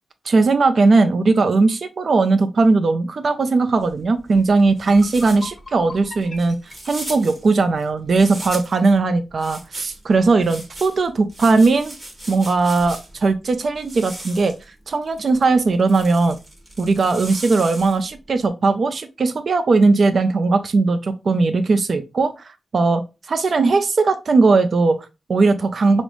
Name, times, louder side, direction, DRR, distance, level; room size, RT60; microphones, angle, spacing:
voice 1, 0.3-6.6 6.9-11.9 12.3-14.6 14.9-16.4 16.8-26.0, right 3 dB, 45° right, 8 dB, 0.4 m, -18 dB
sound 1, 3.8-8.9 9.4-13.3 13.7-18.2, right 1 dB, 20° right, 1.1 m, -38 dB
sound 2, 4.9-7.9, left 2 dB, 35° left, 0.6 m, -41 dB
5.0 x 2.0 x 3.0 m, 0.27 s
wide cardioid pair, 160°, 0 cm